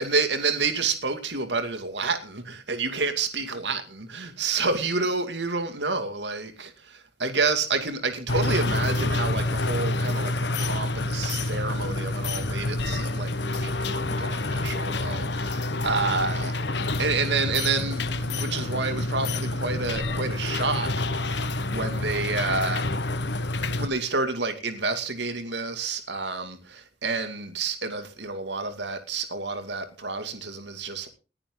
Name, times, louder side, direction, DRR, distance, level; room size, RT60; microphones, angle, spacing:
voice 1, 0.0-16.6 17.0-22.9 23.8-31.1, right 4 dB, 65° right, 2.4 m, -29 dB
sound 1, 8.3-23.9, left 2 dB, 65° left, 1.2 m, -28 dB
20.0 x 10.0 x 3.9 m
head